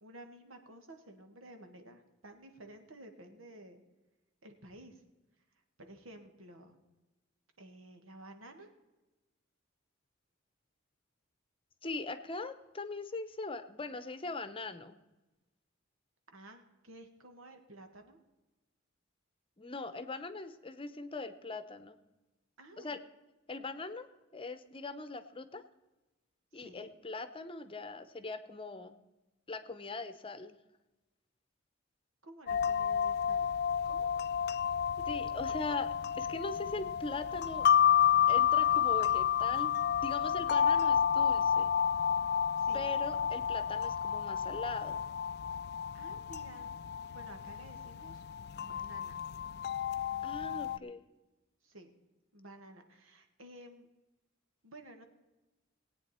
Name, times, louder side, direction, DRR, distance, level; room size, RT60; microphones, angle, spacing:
voice 1, 0.0-3.8 4.4-5.0 5.8-6.8 7.6-8.7 16.3-18.2 22.6-23.0 26.5-26.9 32.2-33.5 33.9-34.1 42.6-42.9 45.9-46.7 47.1-48.2 48.6-49.2 50.5-50.9 51.6-51.9 52.3-53.9 54.6-55.0, right 1 dB, 90° right, 6 dB, 1.9 m, -53 dB
voice 2, 11.8-15.0 19.6-22.0 22.8-23.0 23.5-24.1 24.3-25.6 26.5-29.0 29.5-30.6 35.1-35.9 36.2-37.7 38.3-39.7 40.0-41.7 42.7-45.0 50.2-51.0, left 3 dB, 25° left, 11 dB, 0.8 m, -40 dB
sound 1, 32.5-50.8, left 8 dB, 55° left, 0.4 m, -30 dB
19.5 x 8.9 x 4.4 m, 1.1 s
head